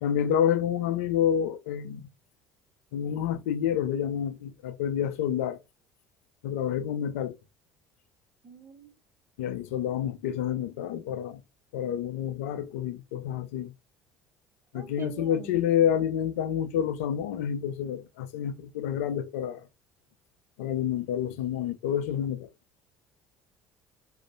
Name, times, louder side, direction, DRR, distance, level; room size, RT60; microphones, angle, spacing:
voice 1, 0.0-2.1 2.9-5.6 6.4-7.3 9.4-11.4 11.7-13.7 14.7-19.7 20.6-22.5, left 9 dB, 80° left, 0.3 m, -28 dB
voice 2, 8.4-8.9 14.7-15.6, right 6 dB, 35° right, 0.6 m, -44 dB
2.5 x 2.0 x 2.4 m
hypercardioid pair, 65°, 7 cm